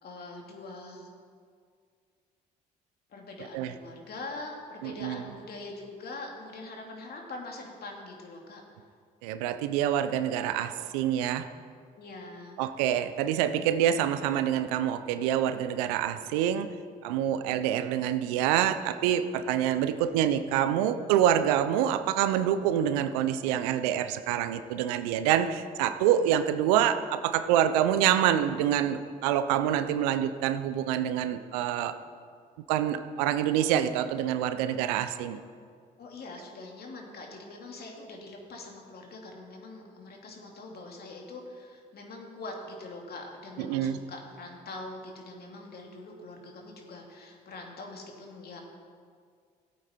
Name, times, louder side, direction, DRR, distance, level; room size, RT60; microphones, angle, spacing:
voice 1, 0.0-1.1 3.1-8.6 12.0-12.6 36.0-48.6, left 2 dB, 55° left, 1 dB, 2.6 m, -43 dB
voice 2, 4.8-5.2 9.2-11.5 12.6-16.7 17.0-32.0 32.7-35.4 43.6-44.0, right 10 dB, 80° right, 11 dB, 0.6 m, -26 dB
16.0 x 8.4 x 4.4 m, 2.1 s
hypercardioid pair, 55°, 20 cm